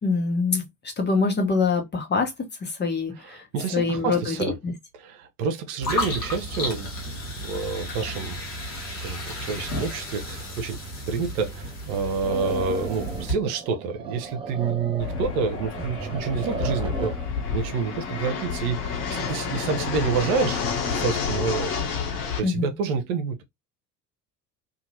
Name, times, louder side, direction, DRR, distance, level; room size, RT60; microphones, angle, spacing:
voice 1, 0.0-0.7 1.0-2.3 2.6-3.5 3.7-4.4 4.6-4.7 22.4-22.7, left 4 dB, 20° left, 1.0 m, -24 dB
voice 2, 3.2-4.6 5.0-8.4 9.0-10.8 11.1-17.1 17.5-21.8 22.4-23.4, right 5 dB, 60° right, 0.7 m, -28 dB
sound 1, 5.8-13.3, left 1 dB, 80° left, 1.1 m, -33 dB
sound 2, 12.2-17.4, right 4 dB, 10° right, 0.4 m, -35 dB
Fixed-wing aircraft airplane, 15.0-22.4, left 6 dB, 55° left, 1.1 m, -29 dB
2.7 x 2.4 x 2.8 m
figure-of-eight pair, 65°, 49 cm